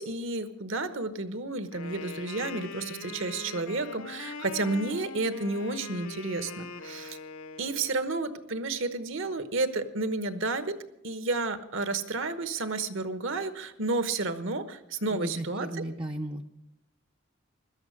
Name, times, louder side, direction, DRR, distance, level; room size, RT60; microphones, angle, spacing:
voice 1, 0.0-7.2 7.6-10.7 11.0-15.8, right 3 dB, 60° right, 11 dB, 1.1 m, -31 dB
Wind instrument woodwind instrument, 1.7-8.0, left 4 dB, 80° left, 1.2 m, -42 dB
voice 2, 15.1-16.4, right 1 dB, 20° right, 2 dB, 0.5 m, -35 dB
17.0 x 12.5 x 6.4 m, 0.90 s
head